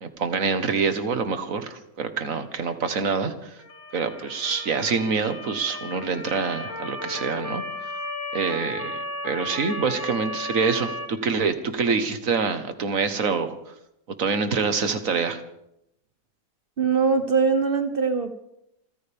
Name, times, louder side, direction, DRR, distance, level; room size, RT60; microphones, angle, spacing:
voice 1, 0.0-3.6 3.9-7.6 8.3-13.6 14.2-15.4, right 5 dB, 65° right, 9 dB, 1.8 m, -26 dB
Motor vehicle (road) / Siren, 3.6-11.1, left 1 dB, 75° left, 2.8 m, -34 dB
voice 2, 16.8-18.4, right 5 dB, 45° right, 8 dB, 1.0 m, -22 dB
27.5 x 14.5 x 3.6 m, 0.80 s
omnidirectional pair, 1.5 m